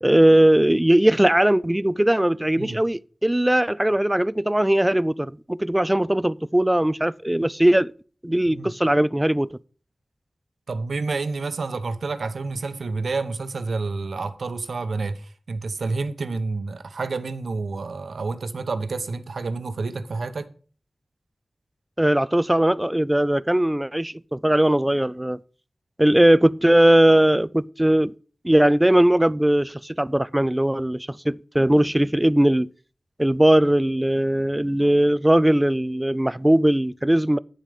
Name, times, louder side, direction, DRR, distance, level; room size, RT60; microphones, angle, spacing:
voice 1, 0.0-7.9 8.2-9.5 22.0-25.4 26.0-28.1 28.4-32.7 33.2-37.4, right 1 dB, 10° right, 0.4 m, -19 dB
voice 2, 10.7-20.5, right 3 dB, 85° right, 0.9 m, -29 dB
9.9 x 7.4 x 5.1 m
wide cardioid pair, 90°, 0 cm